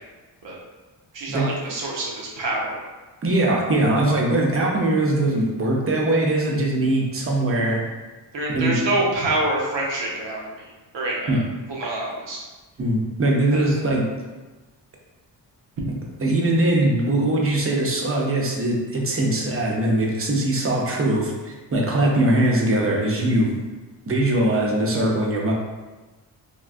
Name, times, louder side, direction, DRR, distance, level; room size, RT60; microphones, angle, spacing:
voice 1, 1.1-2.8 8.3-10.6 10.9-11.4 11.7-12.4 13.6-13.8, right 2 dB, 85° right, -3 dB, 0.9 m, -26 dB
voice 2, 3.2-7.8 8.5-8.8 11.3-11.4 12.8-14.1 16.2-23.5 24.1-25.5, right 1 dB, 30° right, -1 dB, 0.7 m, -21 dB
3.5 x 2.3 x 2.5 m, 1.2 s
cardioid pair, 80°, 43 cm